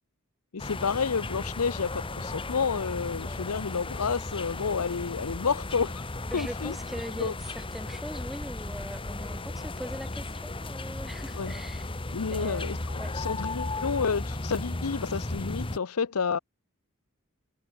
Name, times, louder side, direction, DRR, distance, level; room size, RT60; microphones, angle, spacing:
voice 1, 0.5-6.0 6.3-6.7 7.2-7.3 11.3-11.5 12.1-16.4, left 5 dB, 85° left, 0.7 m, -30 dB
sound 1, 0.6-15.8, left 2 dB, 25° left, 1.1 m, -35 dB
voice 2, 6.3-11.9 12.3-13.1, equal, ahead, 5.5 m, -41 dB
head